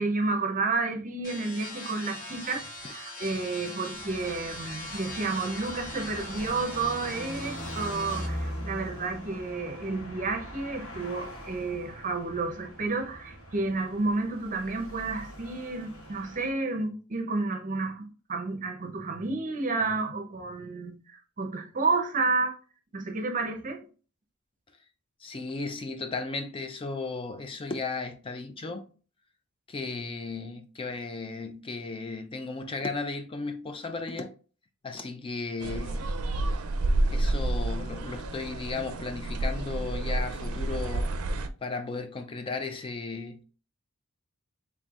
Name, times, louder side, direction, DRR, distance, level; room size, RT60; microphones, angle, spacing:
voice 1, 0.0-22.6 22.9-23.9, right 3 dB, 40° right, 0.7 m, -31 dB
sound 1, 1.2-8.3, left 1 dB, 40° left, 1.6 m, -41 dB
sound 2, 3.9-16.5, equal, 85° left, 1.7 m, -41 dB
voice 2, 25.2-28.9 29.7-34.3 34.8-36.1 37.1-41.2 41.6-43.4, left 3 dB, 25° left, 0.4 m, -35 dB
sound 3, 35.6-41.5, right 2 dB, 80° right, 0.4 m, -29 dB
4.3 x 3.5 x 2.4 m
head